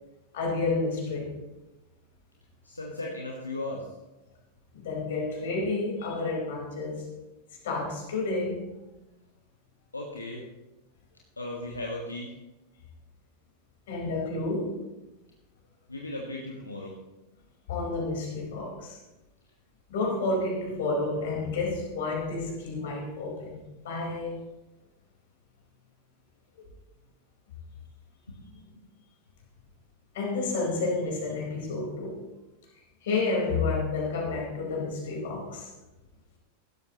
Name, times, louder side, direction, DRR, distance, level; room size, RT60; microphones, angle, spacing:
voice 1, 0.3-1.3 4.7-7.1 7.6-8.7 13.9-14.8 17.7-19.0 19.9-24.4 30.1-32.3 33.0-35.7, left 3 dB, 55° left, -1 dB, 4.5 m, -30 dB
voice 2, 2.6-3.9 9.9-10.4 11.4-12.3 15.9-16.9 28.3-28.8, left 2 dB, 80° left, -1 dB, 1.6 m, -37 dB
16.5 x 12.5 x 3.1 m, 1.0 s
figure-of-eight pair, 90°, 0 cm